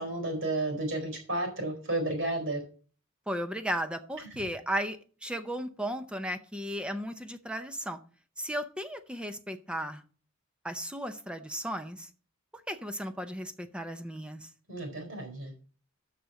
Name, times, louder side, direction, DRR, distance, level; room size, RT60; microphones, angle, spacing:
voice 1, 0.0-2.6 14.7-15.5, right 2 dB, 65° right, 2 dB, 4.3 m, -32 dB
voice 2, 3.3-8.0 8.4-10.0 10.6-12.1 12.7-14.5, equal, 5° right, 8 dB, 0.6 m, -35 dB
7.4 x 6.4 x 6.7 m, 0.40 s
head